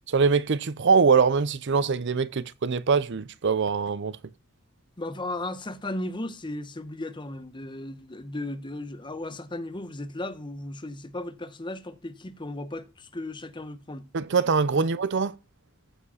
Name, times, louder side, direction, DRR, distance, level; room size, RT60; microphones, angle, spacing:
voice 1, 0.0-4.2 14.1-15.3, right 5 dB, 55° right, 0.6 m, -23 dB
voice 2, 5.0-14.1 14.8-14.9, left 1 dB, 20° left, 0.9 m, -36 dB
14.5 x 4.9 x 5.6 m
head